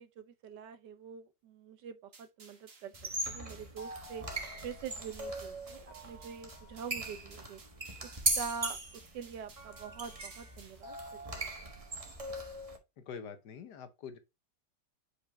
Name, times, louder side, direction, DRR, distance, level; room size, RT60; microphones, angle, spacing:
voice 1, 0.0-4.2 4.6-7.6 8.0-8.8 9.1-11.0, right 7 dB, 85° right, 1.5 m, -44 dB
sound 1, 2.1-10.8, right 4 dB, 50° right, 2.1 m, -58 dB
sound 2, 2.9-12.8, right 1 dB, 20° right, 1.3 m, -39 dB
voice 2, 13.0-14.2, left 6 dB, 75° left, 1.5 m, -45 dB
5.2 x 4.9 x 4.2 m
omnidirectional pair, 1.8 m